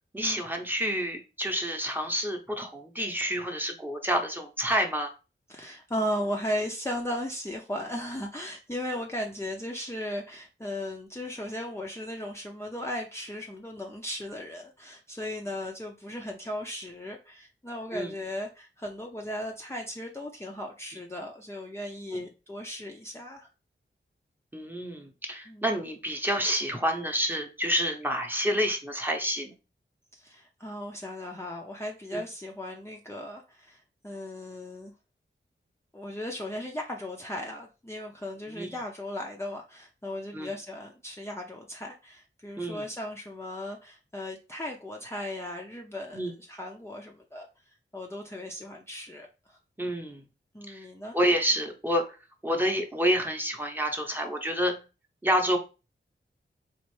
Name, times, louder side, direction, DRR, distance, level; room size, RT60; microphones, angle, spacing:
voice 1, 0.1-5.1 17.9-18.1 22.1-22.3 24.5-29.6 32.1-32.2 38.5-38.8 40.3-40.5 42.6-42.8 46.1-46.3 49.8-50.2 50.7-50.9 51.1-52.1 52.4-54.8 55.2-55.6, equal, 10° right, 2 dB, 0.9 m, -28 dB
voice 2, 5.5-23.5 25.5-25.6 30.1-34.9 35.9-49.6 50.5-51.2, left 1 dB, 15° left, -1 dB, 0.6 m, -36 dB
4.2 x 2.5 x 3.1 m, 0.30 s
wide cardioid pair, 65°, 21 cm